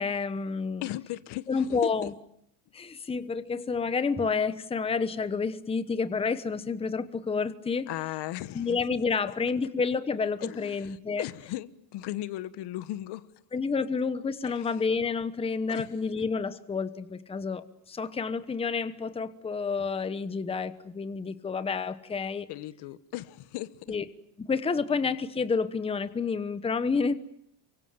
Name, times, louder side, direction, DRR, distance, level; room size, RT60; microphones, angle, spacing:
voice 1, 0.0-0.8 1.5-2.1 2.7-7.9 8.5-11.2 13.5-22.5 23.9-24.0 24.4-27.1, left 5 dB, 15° left, 1.0 m, -29 dB
voice 2, 0.8-2.1 7.9-8.7 10.4-13.3 14.4-14.8 15.7-15.9 22.5-23.7, left 15 dB, 60° left, 1.3 m, -37 dB
28.0 x 24.5 x 7.4 m
cardioid pair, 135°, 44 cm